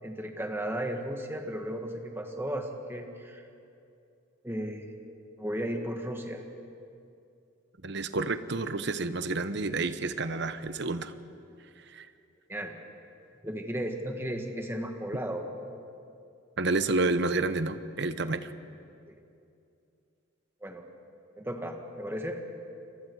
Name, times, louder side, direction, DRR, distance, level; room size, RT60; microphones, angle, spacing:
voice 1, 0.0-3.4 4.4-4.9 5.4-6.4 12.5-12.8 13.4-15.7 19.1-19.2 20.6-20.8 21.4-22.4, equal, 10° right, 3 dB, 1.7 m, -35 dB
voice 2, 7.8-11.1 11.9-12.1 16.6-18.5, right 3 dB, 55° right, 11 dB, 0.9 m, -29 dB
28.0 x 23.0 x 4.8 m, 2.6 s
head